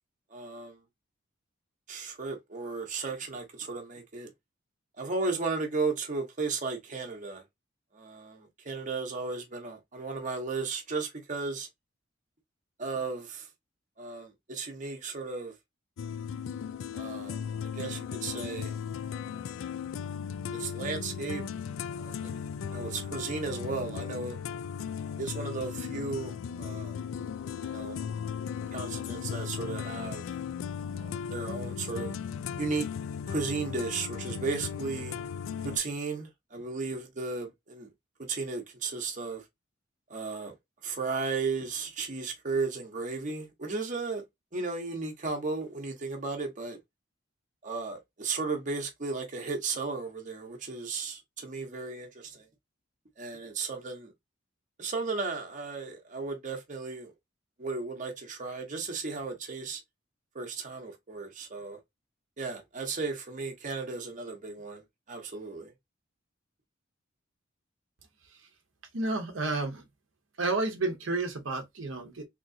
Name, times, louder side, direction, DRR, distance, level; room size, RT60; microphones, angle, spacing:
voice 1, 0.3-0.8 1.9-4.3 5.0-7.4 7.9-11.7 12.8-13.5 14.0-15.5 16.9-18.7 20.5-21.4 22.0-22.4 22.7-24.4 25.2-27.0 27.6-28.0 28.7-30.2 30.9-32.1 32.6-32.9 33.3-35.2 35.6-37.9 38.3-39.4 40.1-40.5 40.8-44.2 44.5-46.8 47.6-52.5 53.2-54.1 54.8-57.1 57.6-59.8 60.3-61.8 62.4-65.7, right 4 dB, 40° right, 0.9 m, -35 dB
sound 1, 16.0-35.8, left 7 dB, 90° left, 0.3 m, -36 dB
voice 2, 68.9-69.9 70.4-72.2, right 2 dB, 70° right, 0.9 m, -31 dB
3.6 x 2.9 x 2.6 m
head